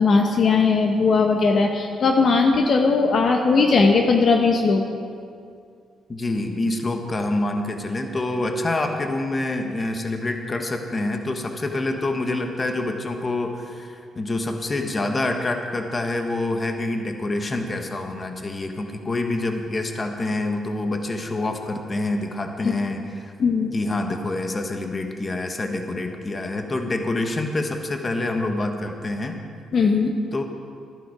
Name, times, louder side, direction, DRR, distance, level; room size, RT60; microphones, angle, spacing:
voice 1, 0.0-4.8 23.4-23.7 29.7-30.1, left 4 dB, 50° left, 3 dB, 1.1 m, -18 dB
voice 2, 6.1-23.3 23.7-29.4 30.3-30.4, left 2 dB, 30° left, 4 dB, 1.3 m, -26 dB
14.0 x 11.5 x 5.0 m, 2.3 s
cardioid pair, 90°, 0 cm